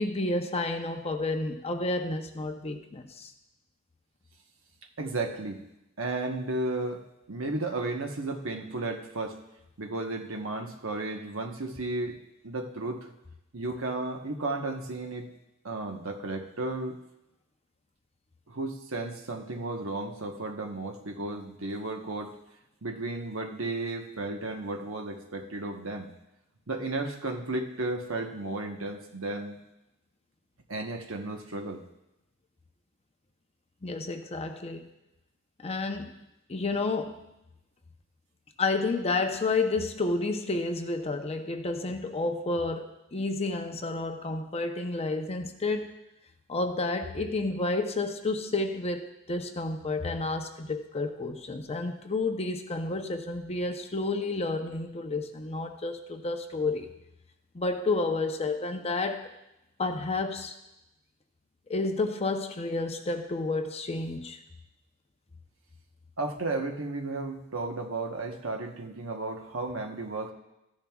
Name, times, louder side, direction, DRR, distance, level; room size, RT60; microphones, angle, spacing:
voice 1, 0.0-3.3 33.8-34.9 35.6-36.1 36.5-37.2 38.6-46.0 46.5-56.9 57.5-59.3 59.8-60.5 61.7-64.4, left 3 dB, 30° left, 6 dB, 0.7 m, -30 dB
voice 2, 5.0-5.6 6.0-9.4 9.8-12.2 12.4-13.1 13.5-15.3 15.6-17.0 18.5-22.3 22.8-26.1 26.7-29.6 30.7-31.8 66.2-70.3, right 2 dB, 70° right, 3 dB, 1.1 m, -34 dB
14.5 x 10.5 x 2.4 m, 0.89 s
head